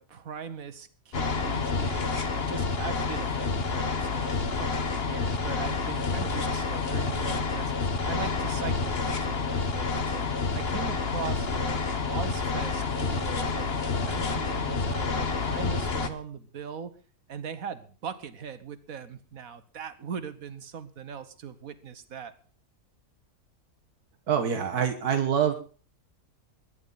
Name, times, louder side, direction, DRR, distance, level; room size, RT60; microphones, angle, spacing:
voice 1, 0.0-7.7 8.0-10.3 10.5-16.9 17.3-22.3, right 7 dB, 65° right, 12 dB, 1.7 m, -40 dB
sound 1, 1.1-16.1, left 4 dB, 45° left, 1.4 m, -29 dB
voice 2, 24.3-25.5, right 8 dB, 90° right, 6 dB, 1.9 m, -25 dB
22.0 x 11.0 x 4.1 m, 0.39 s
omnidirectional pair, 1.6 m